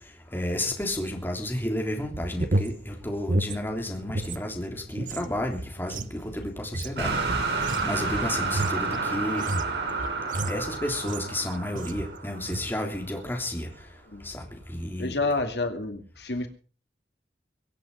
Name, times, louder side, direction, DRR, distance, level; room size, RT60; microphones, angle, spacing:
voice 1, 0.3-7.1 7.8-9.5 10.5-13.7 14.2-14.4 14.7-15.2, left 1 dB, 10° left, 1 dB, 3.6 m, -31 dB
sound 1, 2.0-4.4 4.7-11.4 11.8-12.1 12.4-12.8, right 1 dB, 50° right, 1.0 m, -32 dB
sound 2, 7.0-13.0, right 3 dB, 80° right, 4.1 m, -30 dB
voice 2, 15.0-16.5, left 3 dB, 70° left, 5 dB, 2.5 m, -29 dB
24.0 x 8.3 x 5.7 m, 0.38 s
head